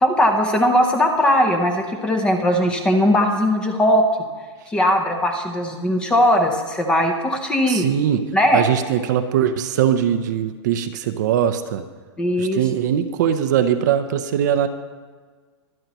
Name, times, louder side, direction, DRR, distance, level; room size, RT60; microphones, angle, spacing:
voice 1, 0.0-4.0 4.7-7.9 8.3-8.6 12.2-12.6, equal, 5° left, 4 dB, 0.7 m, -19 dB
voice 2, 7.7-8.2 8.5-11.8 12.4-14.7, right 9 dB, 35° right, 9 dB, 0.6 m, -21 dB
24.0 x 9.4 x 3.0 m, 1.5 s
hypercardioid pair, 165°, 15 cm